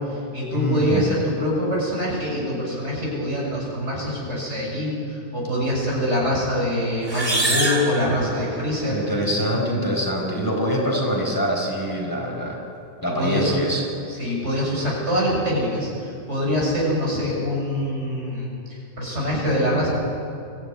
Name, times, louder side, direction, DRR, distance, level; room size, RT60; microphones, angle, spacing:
voice 1, 0.0-9.0 13.2-13.6 14.2-18.5 19.0-19.9, left 1 dB, 75° right, -4 dB, 7.0 m, -24 dB
voice 2, 0.5-1.1 8.3-12.6 13.0-13.8, equal, 15° left, -2 dB, 4.3 m, -25 dB
sound 1, 7.0-8.9, right 2 dB, 20° right, 3.4 m, -25 dB
23.0 x 15.0 x 9.5 m, 2.6 s
omnidirectional pair, 1.2 m